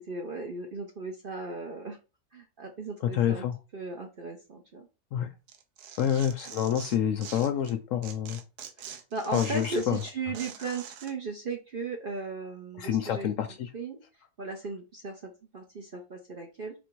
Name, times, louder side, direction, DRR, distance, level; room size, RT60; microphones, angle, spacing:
voice 1, 0.0-2.0 2.3-3.5 3.7-4.9 5.2-5.3 5.9-6.0 6.4-6.5 8.8-14.0 14.4-16.7, right 3 dB, 50° right, 2 dB, 0.7 m, -37 dB
voice 2, 3.1-3.5 5.1-5.3 6.0-8.4 9.3-10.0 12.8-13.7, left 9 dB, 70° left, 8 dB, 0.8 m, -28 dB
Tearing, 5.5-7.7 8.0-11.1, right 8 dB, 80° right, 1.2 m, -44 dB
4.5 x 2.6 x 4.5 m, 0.30 s
omnidirectional pair, 1.7 m